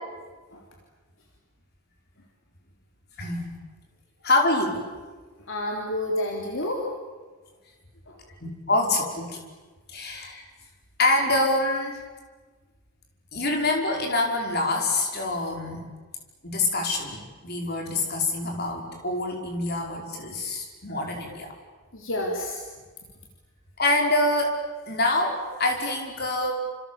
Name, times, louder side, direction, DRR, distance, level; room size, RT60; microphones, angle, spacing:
voice 1, 3.2-3.5 4.2-4.8 8.4-9.4 9.9-10.4 11.0-12.0 13.3-15.9 16.4-21.5 23.8-24.6 24.9-26.5, left 2 dB, 45° left, 1 dB, 5.2 m, -25 dB
voice 2, 5.5-6.9 8.1-8.2 21.9-22.6, left 1 dB, 60° left, 0 dB, 3.6 m, -29 dB
29.0 x 27.5 x 7.3 m, 1.4 s
head